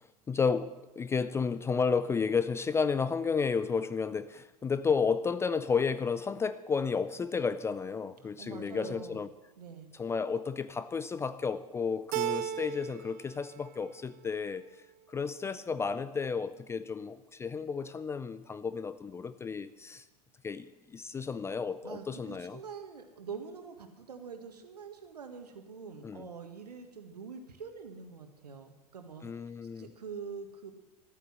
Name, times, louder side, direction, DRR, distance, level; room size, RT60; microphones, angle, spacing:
voice 1, 0.3-9.3 10.0-14.6 15.1-20.0 20.4-22.6 26.0-26.3 29.2-29.9, left 5 dB, 15° left, 0.4 m, -32 dB
voice 2, 8.2-9.2 9.6-9.9 21.8-29.4 29.8-30.8, right 5 dB, 75° right, 1.8 m, -45 dB
Keyboard (musical), 12.1-13.2 13.5-14.3, right 11 dB, 35° right, 0.6 m, -35 dB
13.5 x 9.4 x 7.5 m
figure-of-eight pair, 90°, 21 cm